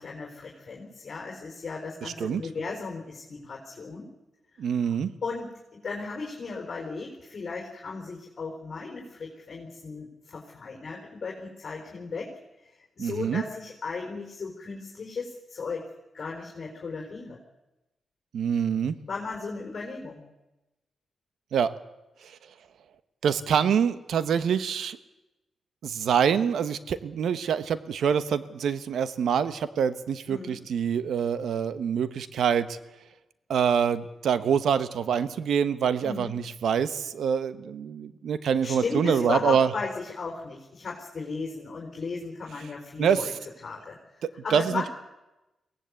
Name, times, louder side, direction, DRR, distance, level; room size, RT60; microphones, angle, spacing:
voice 1, 0.0-4.1 4.5-4.7 5.2-12.3 13.0-15.8 16.1-17.4 19.1-20.2 30.3-30.6 36.0-36.3 38.6-43.3 43.6-44.0 44.4-44.9, left 4 dB, 50° left, -1 dB, 4.4 m, -35 dB
voice 2, 2.0-2.4 4.6-5.1 13.0-13.4 18.3-18.9 21.5-21.7 23.2-25.0 25.8-32.7 33.5-39.7 43.0-43.2 44.5-44.9, right 7 dB, 80° right, 12 dB, 1.1 m, -25 dB
23.0 x 17.5 x 8.4 m, 1.0 s
cardioid pair, 80°, 0 cm